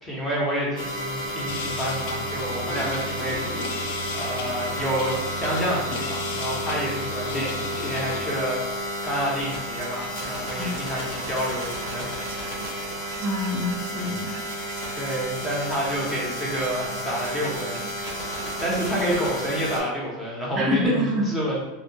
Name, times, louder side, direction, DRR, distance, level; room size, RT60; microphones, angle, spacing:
voice 1, 0.0-3.8 4.1-12.1 14.9-17.8 18.3-18.4 18.6-21.6, equal, 10° left, -5 dB, 0.7 m, -29 dB
sound 1, 0.8-19.8, equal, 40° left, 1.0 m, -32 dB
sound 2, 1.5-8.2, left 2 dB, 75° left, 0.3 m, -34 dB
sound 3, 9.2-19.2, right 5 dB, 90° right, 0.3 m, -42 dB
voice 2, 13.2-14.3 20.6-21.3, left 1 dB, 25° right, -3 dB, 0.5 m, -26 dB
2.6 x 2.2 x 2.7 m, 1.0 s
supercardioid pair, 150°, 0 cm